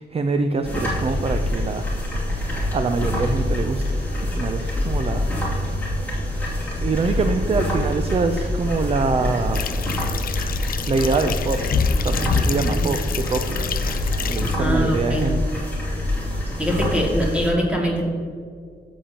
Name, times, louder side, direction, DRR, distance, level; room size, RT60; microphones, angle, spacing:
voice 1, 0.0-1.9 2.7-5.3 5.8-6.1 6.8-9.6 10.9-13.8 14.3-15.4, right 4 dB, 35° right, 7 dB, 0.5 m, -24 dB
sound 1, 0.6-17.5, left 1 dB, 10° left, 2.5 m, -25 dB
sound 2, 9.5-14.6, left 6 dB, 55° left, 0.4 m, -27 dB
voice 2, 12.5-12.8 14.6-15.2 16.6-18.0, equal, 5° right, -3 dB, 2.2 m, -23 dB
13.5 x 7.2 x 2.9 m, 2.2 s
wide cardioid pair, 135°, 18 cm